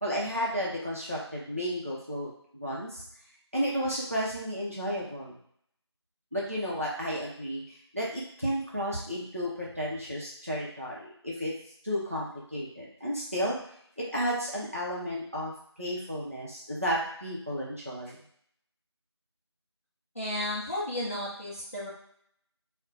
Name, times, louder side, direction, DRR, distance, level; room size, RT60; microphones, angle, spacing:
voice 1, 0.0-2.3 2.6-3.0 3.5-5.4 6.3-11.5 11.8-13.6 14.0-15.5 15.8-18.2, equal, 30° right, -5 dB, 0.6 m, -32 dB
voice 2, 20.1-21.9, left 1 dB, 30° left, -8 dB, 0.8 m, -33 dB
2.4 x 2.0 x 3.9 m, 0.66 s
figure-of-eight pair, 175°, 15 cm